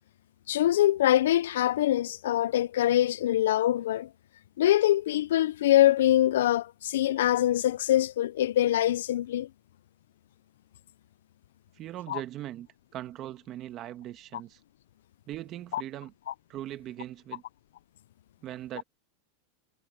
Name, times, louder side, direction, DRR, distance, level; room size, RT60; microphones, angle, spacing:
voice 1, 0.5-4.1 4.6-9.5 12.1-12.2 15.7-15.8 16.3-16.4, left 13 dB, 85° left, 0.3 m, -24 dB
voice 2, 11.8-12.7 12.9-14.6 15.3-16.1 16.5-17.4 18.4-18.8, right 13 dB, 35° right, 1.4 m, -40 dB
supercardioid pair, 145°, 0 cm